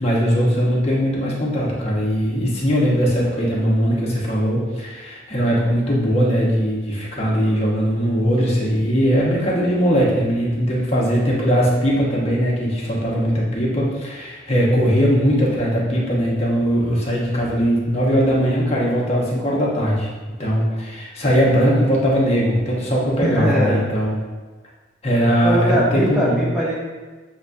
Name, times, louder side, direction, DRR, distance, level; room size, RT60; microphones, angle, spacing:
voice 1, 0.0-20.1 20.4-24.2 25.0-26.4, equal, 35° left, -5 dB, 0.9 m, -20 dB
voice 2, 23.2-23.8 25.4-26.7, equal, 5° right, -6 dB, 0.5 m, -20 dB
6.9 x 2.3 x 2.5 m, 1.3 s
head